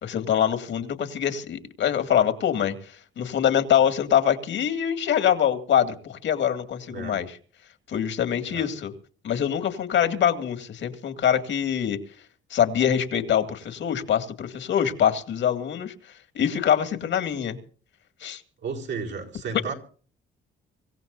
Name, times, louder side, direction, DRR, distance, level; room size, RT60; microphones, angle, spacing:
voice 1, 0.0-7.4 7.9-8.9 9.2-12.0 12.5-15.9 16.3-17.6 18.2-18.4, left 9 dB, 70° left, 7 dB, 2.3 m, -24 dB
voice 2, 18.6-19.7, right 5 dB, 70° right, 0 dB, 4.7 m, -33 dB
25.5 x 15.5 x 2.7 m, 0.42 s
cardioid pair, 90°, 20 cm